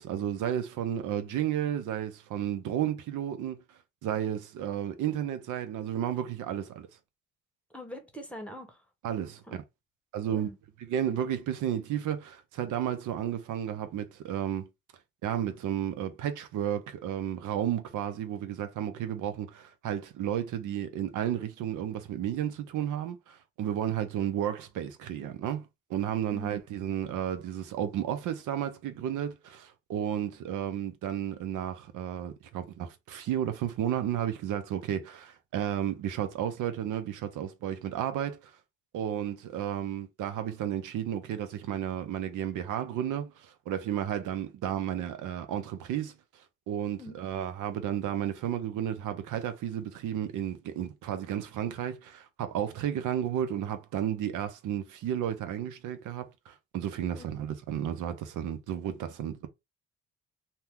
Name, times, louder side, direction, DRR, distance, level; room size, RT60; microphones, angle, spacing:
voice 1, 0.0-3.6 4.0-6.9 9.0-9.6 10.1-10.5 10.8-14.7 15.2-38.5 38.9-46.1 46.7-59.5, right 10 dB, 80° right, 0.7 m, -32 dB
voice 2, 7.7-8.8 9.5-9.6 10.3-10.6 26.3-26.5 47.0-47.2 57.1-57.3, equal, 5° left, 0.9 m, -43 dB
2.8 x 2.2 x 3.4 m
cardioid pair, 90°, 30 cm